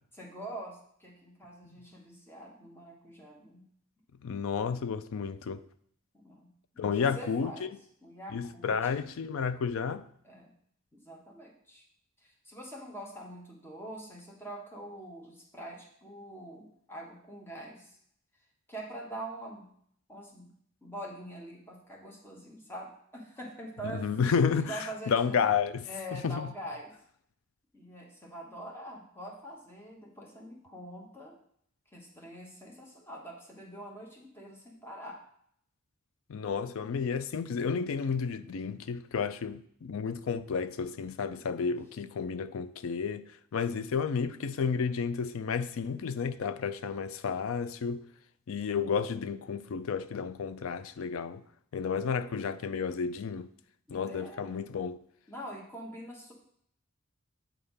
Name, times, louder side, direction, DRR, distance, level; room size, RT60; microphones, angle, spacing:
voice 1, 0.1-3.7 6.1-6.5 6.7-7.7 8.0-9.0 10.2-10.5 10.9-11.8 12.2-18.0 18.7-19.7 20.1-20.5 20.8-24.1 24.6-25.5 25.8-26.9 27.7-31.4 31.9-35.2 53.9-54.6 55.3-56.3, right 1 dB, 10° left, 1.4 m, -44 dB
voice 2, 4.2-5.6 6.8-7.5 8.3-10.1 24.0-24.8 25.1-25.9 26.1-26.5 36.3-48.0 48.5-51.4 51.7-53.5 53.9-55.0, left 6 dB, 70° left, 0.4 m, -31 dB
8.4 x 3.4 x 5.6 m
head